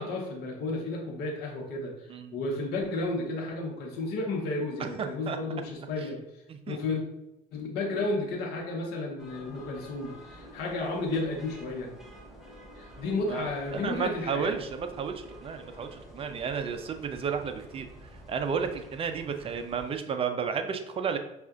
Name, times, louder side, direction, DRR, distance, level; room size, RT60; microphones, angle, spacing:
voice 1, 0.0-6.2 6.7-7.0 7.5-11.9 12.8-14.6, left 2 dB, 70° left, -1 dB, 0.9 m, -32 dB
voice 2, 4.8-5.4 6.5-7.0 13.3-17.9 18.3-21.2, right 6 dB, 35° right, 7 dB, 0.4 m, -32 dB
sound 1, 9.2-19.9, equal, ahead, 0.9 m, -49 dB
5.4 x 2.4 x 2.5 m, 0.90 s
cardioid pair, 105°, 17 cm